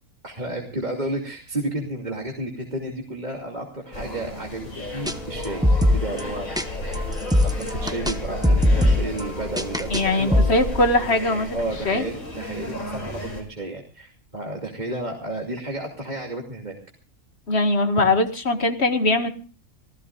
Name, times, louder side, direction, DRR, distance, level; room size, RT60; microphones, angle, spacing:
voice 1, 0.2-6.6 7.4-10.5 11.5-16.8, right 1 dB, 35° right, 0 dB, 2.8 m, -32 dB
sound 1, 3.9-13.4, left 1 dB, 90° left, 5.9 m, -33 dB
sound 2, 5.1-5.2 5.4-6.7 6.9-8.2 8.4-10.0 10.3-10.8, left 1 dB, 5° right, 1.0 m, -21 dB
voice 2, 9.9-11.6 11.9-12.0 17.5-19.3, left 2 dB, 55° left, 7 dB, 2.0 m, -21 dB
27.0 x 16.0 x 2.4 m, 0.37 s
omnidirectional pair, 1.4 m